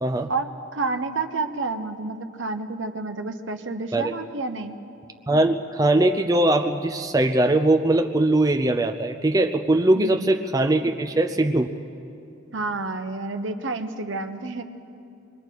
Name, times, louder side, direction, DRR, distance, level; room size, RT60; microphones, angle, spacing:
voice 1, 0.3-4.8 9.9-10.3 12.5-14.6, right 3 dB, 65° right, 7 dB, 1.0 m, -29 dB
voice 2, 5.3-11.7, right 2 dB, 20° right, 5 dB, 0.5 m, -21 dB
26.0 x 21.5 x 4.6 m, 2.6 s
head